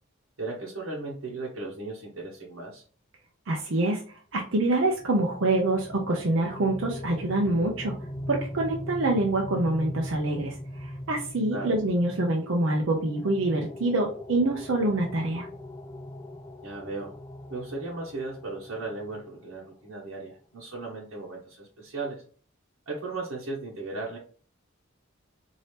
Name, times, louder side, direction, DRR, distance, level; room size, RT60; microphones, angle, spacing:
voice 1, 0.4-2.8 11.5-11.8 16.6-17.1 17.5-22.2 22.9-24.2, right 3 dB, 85° right, -5 dB, 1.1 m, -36 dB
voice 2, 3.5-7.9 8.3-15.5, right 2 dB, 65° right, 0 dB, 0.6 m, -26 dB
sound 1, 4.6-19.4, left 1 dB, 20° left, 0.4 m, -40 dB
4.3 x 2.8 x 3.2 m, 0.42 s
head